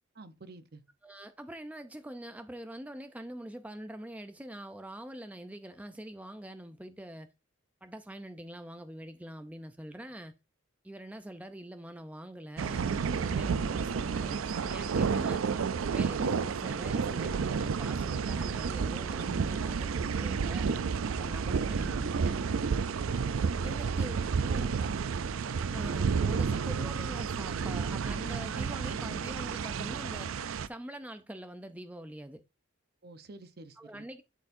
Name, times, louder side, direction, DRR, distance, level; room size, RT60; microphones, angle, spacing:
voice 1, 0.1-0.8 22.0-22.3 24.3-25.0 33.0-34.0, right 2 dB, 50° right, 0.7 m, -47 dB
voice 2, 1.0-7.3 7.8-10.3 10.8-15.4 15.9-20.7 21.2-22.8 23.6-24.8 25.7-30.3 30.7-32.4 33.8-34.2, right 1 dB, 10° right, 0.5 m, -44 dB
sound 1, 12.6-30.7, right 5 dB, 85° right, 0.4 m, -31 dB
12.0 x 4.4 x 2.6 m
head